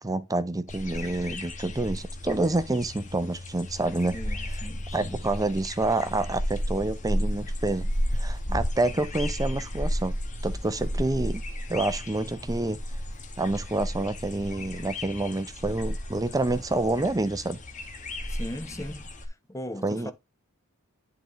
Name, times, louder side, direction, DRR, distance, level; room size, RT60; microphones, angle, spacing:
voice 1, 0.0-4.2 4.9-10.1 10.4-11.4 11.7-12.8 13.4-17.6 19.8-20.1, right 2 dB, 15° right, 0.6 m, -28 dB
sound 1, 0.7-19.3, equal, 35° left, 1.2 m, -33 dB
voice 2, 4.1-5.3 18.3-20.1, left 1 dB, 15° left, 0.9 m, -39 dB
10.5 x 3.9 x 3.1 m
head